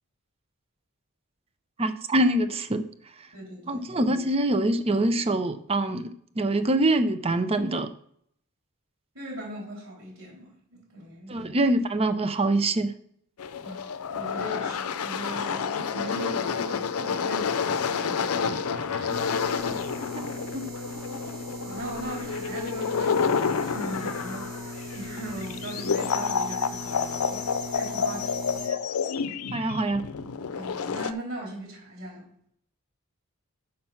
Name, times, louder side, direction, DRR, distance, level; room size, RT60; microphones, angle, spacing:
voice 1, 1.8-2.9 3.7-7.9 11.3-12.9 20.2-20.3 20.5-20.6 28.7-28.8 29.5-30.0, right 1 dB, 25° right, 11 dB, 0.6 m, -25 dB
voice 2, 3.3-3.9 9.1-11.5 13.6-19.2 21.6-24.5 24.9-27.4 27.7-28.6 30.5-32.2, right 1 dB, 65° right, -3 dB, 3.8 m, -39 dB
sound 1, 13.4-31.1, left 6 dB, 80° left, 0.5 m, -29 dB
sound 2, 19.1-28.7, left 1 dB, 90° right, 3.3 m, -39 dB
6.5 x 5.9 x 5.7 m, 0.66 s
head